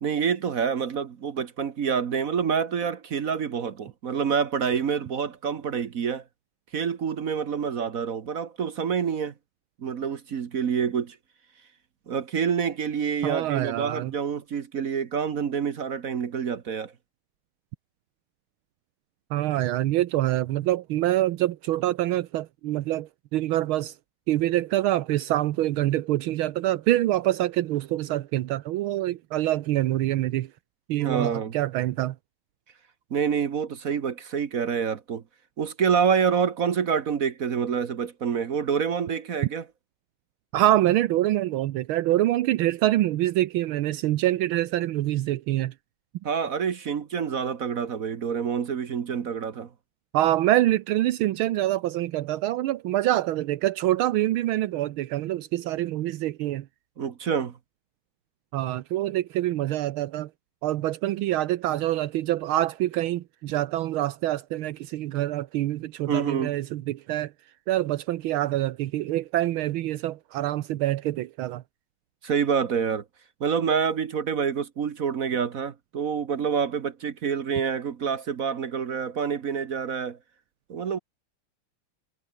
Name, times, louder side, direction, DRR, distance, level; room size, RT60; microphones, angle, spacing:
voice 1, 0.0-6.2 6.7-9.3 9.8-11.2 12.1-16.9 31.0-31.5 33.1-35.2 35.6-39.7 46.2-49.7 57.0-57.6 66.1-66.5 72.2-73.0 73.4-80.2 80.7-81.0, right 7 dB, 50° right, 1.3 m, -27 dB
voice 2, 13.2-14.1 19.3-23.9 24.3-30.5 30.9-32.1 40.5-45.7 50.1-56.6 58.5-60.3 60.6-67.3 67.7-71.6, right 14 dB, 80° right, 1.6 m, -25 dB
omnidirectional pair, 2.3 m